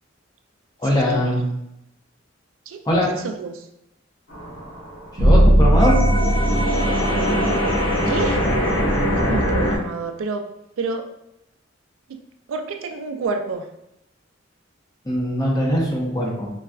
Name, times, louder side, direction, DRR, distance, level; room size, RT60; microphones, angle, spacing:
voice 1, 0.8-1.4 2.9-3.1 5.2-6.0 15.0-16.5, equal, 20° left, -3 dB, 0.7 m, -21 dB
voice 2, 3.2-3.6 8.1-8.4 9.2-10.5 10.8-11.1 12.5-13.6, right 4 dB, 85° right, 6 dB, 0.4 m, -28 dB
sound 1, 4.3-9.8, equal, 85° left, 0.9 m, -22 dB
sound 2, 5.2-9.4, right 1 dB, 50° right, 1.0 m, -19 dB
3.9 x 2.3 x 2.3 m, 0.83 s
head